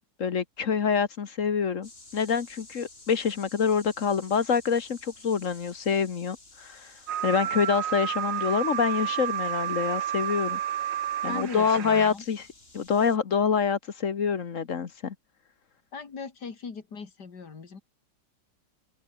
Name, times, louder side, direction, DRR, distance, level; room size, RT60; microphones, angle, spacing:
voice 1, 0.0-6.9 7.2-10.6 11.2-12.5 12.7-15.1, left 6 dB, 50° left, 1.5 m, -26 dB
sound 1, 1.8-13.2, left 2 dB, 30° left, 4.4 m, -53 dB
sound 2, 7.1-12.1, right 10 dB, 80° right, 1.8 m, -30 dB
voice 2, 11.3-12.2 15.9-17.8, left 5 dB, 65° left, 3.1 m, -39 dB
omnidirectional pair, 1.9 m